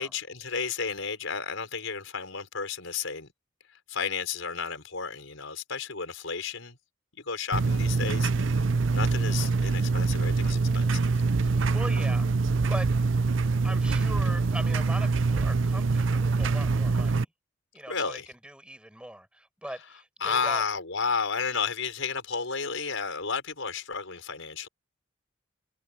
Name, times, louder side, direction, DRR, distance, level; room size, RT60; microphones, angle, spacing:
voice 1, 0.0-3.3 3.9-6.8 7.3-8.6 8.9-11.0 17.9-18.3 20.2-24.7, left 5 dB, 80° left, 5.0 m, -32 dB
sound 1, 7.5-17.2, right 4 dB, 70° right, 0.6 m, -25 dB
voice 2, 11.4-12.3 12.7-12.9 13.6-17.3 17.7-20.6, right 1 dB, 5° right, 6.4 m, -40 dB
head